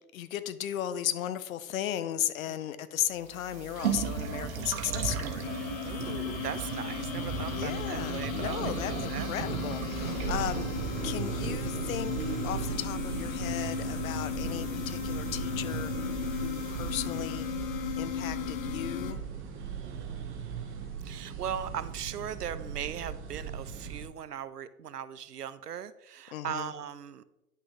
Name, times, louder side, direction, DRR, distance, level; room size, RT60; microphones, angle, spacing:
voice 1, 0.1-5.5 7.5-10.7 11.0-17.5 17.9-19.2 26.3-26.7, left 11 dB, 60° left, 0.8 m, -36 dB
sound 1, 3.2-17.5, right 6 dB, 65° right, 1.6 m, -37 dB
sound 2, 5.4-19.1, left 10 dB, 25° left, 0.4 m, -37 dB
voice 2, 5.8-9.3 14.0-14.3 19.6-27.2, right 9 dB, 90° right, 0.7 m, -39 dB
sound 3, 10.0-24.1, right 7 dB, 25° right, 1.4 m, -38 dB
10.0 x 6.0 x 3.3 m
hypercardioid pair, 110°, 46 cm